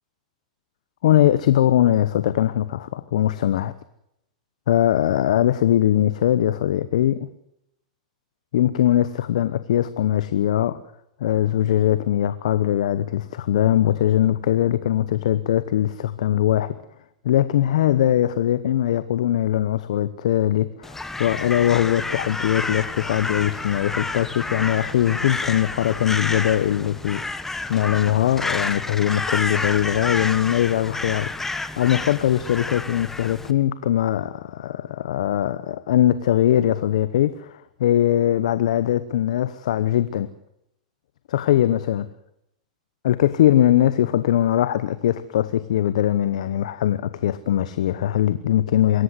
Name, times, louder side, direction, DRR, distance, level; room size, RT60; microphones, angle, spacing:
voice 1, 1.0-3.7 4.7-7.3 8.5-10.8 11.2-16.7 17.2-40.3 41.3-42.0 43.0-49.0, left 11 dB, 75° left, 1.0 m, -21 dB
Crow, 20.8-33.5, left 3 dB, 10° left, 1.3 m, -30 dB
24.0 x 14.5 x 8.0 m
hypercardioid pair, 115°, 4 cm